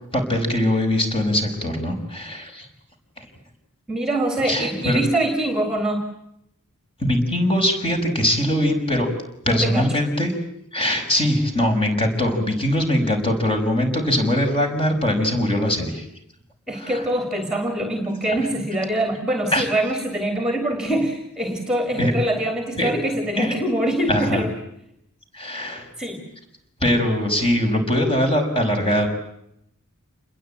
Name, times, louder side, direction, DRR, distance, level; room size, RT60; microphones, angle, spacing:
voice 1, 0.1-2.7 3.2-3.3 4.5-5.0 7.0-9.1 9.4-10.3 10.7-16.0 16.7-17.0 18.3-18.4 19.5-19.7 22.0-22.1 22.8-22.9 23.4-23.5 24.1-24.4 25.3-25.9 26.8-29.1, left 1 dB, 25° left, 4 dB, 6.1 m, -21 dB
voice 2, 3.9-6.0 9.5-9.9 16.7-24.5 26.0-26.2, right 1 dB, 5° right, 5 dB, 3.2 m, -24 dB
28.5 x 21.5 x 9.1 m, 0.79 s
head